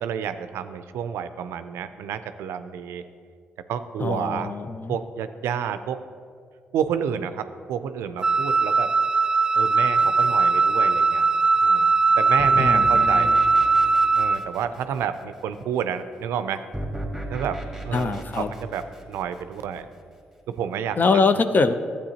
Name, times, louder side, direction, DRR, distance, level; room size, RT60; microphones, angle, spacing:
voice 1, 0.0-3.0 3.7-4.6 4.9-6.0 6.7-8.9 9.5-11.2 11.6-13.4 14.1-16.6 17.3-17.6 17.8-19.9 20.5-21.0, right 8 dB, 80° right, 11 dB, 0.4 m, -30 dB
voice 2, 4.0-5.0 12.6-13.4 17.9-18.5 21.0-21.7, left 4 dB, 45° left, 10 dB, 0.5 m, -23 dB
Wind instrument woodwind instrument, 8.2-14.4, right 4 dB, 20° right, 0.4 m, -19 dB
sound 1, 10.0-11.2 12.4-15.4 16.7-20.0, right 1 dB, ahead, 1.6 m, -36 dB
12.0 x 8.4 x 2.9 m, 2.1 s
supercardioid pair, 60°, 4 cm